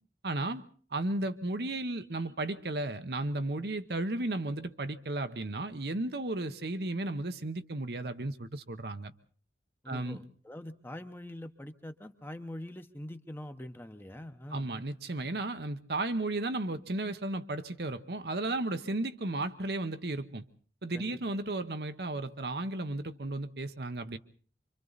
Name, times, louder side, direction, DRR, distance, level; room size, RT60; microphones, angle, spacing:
voice 1, 0.2-0.6 0.9-9.1 9.9-10.2 14.5-20.4 20.8-24.2, right 2 dB, 65° right, 1.0 m, -34 dB
voice 2, 9.8-14.7 20.9-21.2, left 1 dB, 10° left, 1.0 m, -44 dB
26.0 x 25.0 x 4.1 m
head